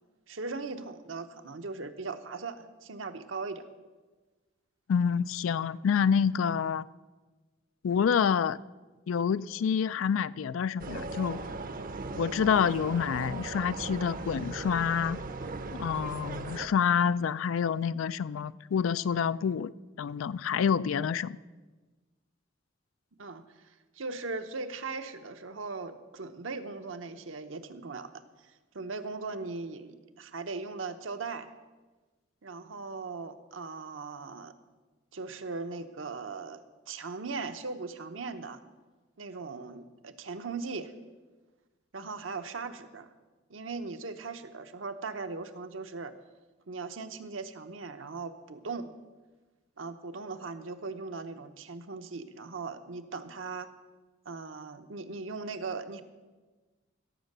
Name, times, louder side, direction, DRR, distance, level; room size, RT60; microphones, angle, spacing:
voice 1, 0.3-3.6 23.2-23.4 24.0-31.5 32.4-34.5 35.1-38.6 39.2-40.9 41.9-43.1 43.5-46.1 46.7-48.9 49.8-53.7 54.2-56.0, right 4 dB, 75° right, 8 dB, 0.9 m, -39 dB
voice 2, 4.9-6.9 7.8-8.6 9.1-11.4 12.2-15.2 15.8-19.7 20.0-21.4, left 7 dB, 85° left, 17 dB, 0.4 m, -27 dB
sound 1, 10.8-16.7, right 3 dB, 45° right, 0.7 m, -38 dB
16.0 x 7.3 x 6.7 m, 1.3 s
head